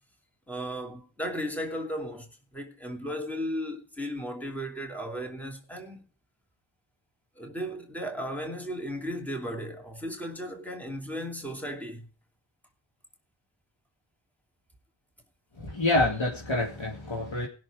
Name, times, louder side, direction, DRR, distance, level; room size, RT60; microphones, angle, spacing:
voice 1, 0.5-2.3 2.5-6.0 7.4-12.1, equal, 5° left, 2.6 m, -35 dB
voice 2, 15.6-17.5, left 2 dB, 70° left, 2.5 m, -27 dB
19.5 x 6.5 x 5.0 m
wide cardioid pair, 85°, 48 cm